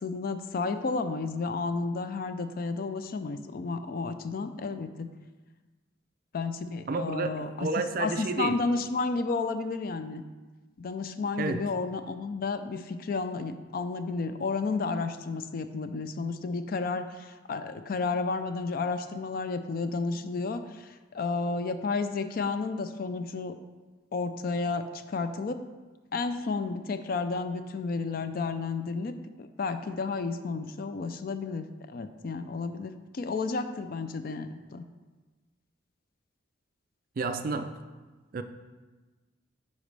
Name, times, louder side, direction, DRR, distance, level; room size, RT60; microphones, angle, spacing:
voice 1, 0.0-5.1 6.3-7.7 8.0-10.2 10.8-23.5 24.1-25.6 26.1-34.8, left 4 dB, 45° left, 10 dB, 0.3 m, -32 dB
voice 2, 6.9-8.6 11.4-11.7 37.2-37.8 38.3-38.4, right 4 dB, 45° right, 9 dB, 0.4 m, -31 dB
10.0 x 4.1 x 3.3 m, 1.3 s
head